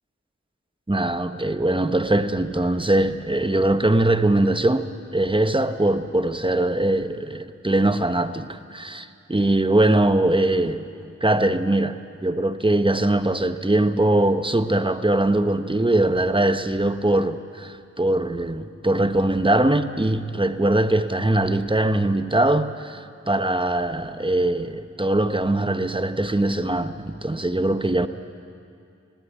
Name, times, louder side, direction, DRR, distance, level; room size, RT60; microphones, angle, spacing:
voice 1, 0.9-4.9 5.1-10.9 11.2-28.1, right 1 dB, 15° right, 1.0 m, -21 dB
19.5 x 17.5 x 8.3 m
wide cardioid pair, 40°, 29 cm